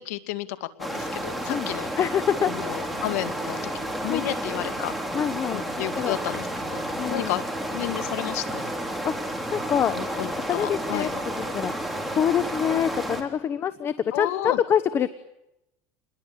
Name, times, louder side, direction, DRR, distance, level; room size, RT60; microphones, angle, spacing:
voice 1, 0.0-1.9 2.5-4.9 5.5-6.8 7.1-7.4 7.7-8.6 9.9-11.1 14.1-14.6, left 15 dB, 85° left, 11 dB, 2.1 m, -32 dB
sound 1, 0.8-13.2, right 1 dB, ahead, 3.8 m, -31 dB
voice 2, 2.0-2.9 4.0-4.3 5.1-5.6 5.9-6.2 7.0-7.3 9.0-9.1 9.5-9.9 10.5-11.1 11.5-15.1, left 8 dB, 30° left, 13 dB, 1.1 m, -25 dB
28.5 x 21.0 x 8.7 m, 0.87 s
supercardioid pair, 145°, 8 cm